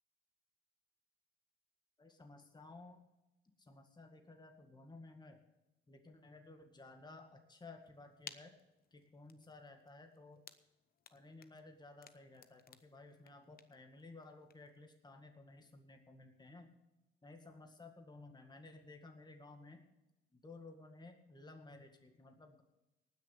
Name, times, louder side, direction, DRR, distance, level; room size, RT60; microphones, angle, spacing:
voice 1, 2.0-3.0 3.6-5.4 5.9-8.5 8.9-10.4 11.1-16.7 17.2-19.9 20.3-22.6, left 2 dB, 20° left, 5 dB, 1.9 m, -56 dB
sound 1, 7.8-14.9, left 7 dB, 50° left, 0.9 m, -59 dB
18.5 x 6.7 x 6.7 m, 0.96 s
cardioid pair, 90°, 20 cm